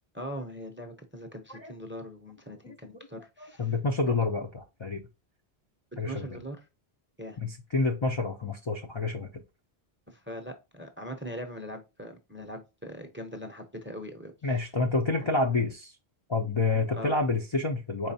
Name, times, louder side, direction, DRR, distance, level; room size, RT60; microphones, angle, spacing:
voice 1, 0.1-3.7 4.1-4.2 6.0-6.6 7.2-7.4 10.1-14.7 15.2-15.5 16.9-17.2, equal, 15° right, 6 dB, 0.6 m, -41 dB
voice 2, 3.4-5.0 6.0-6.4 7.4-9.4 14.4-15.9 16.3-18.1, left 3 dB, 40° left, 2 dB, 0.4 m, -28 dB
4.7 x 3.8 x 2.7 m, 0.26 s
omnidirectional pair, 1.1 m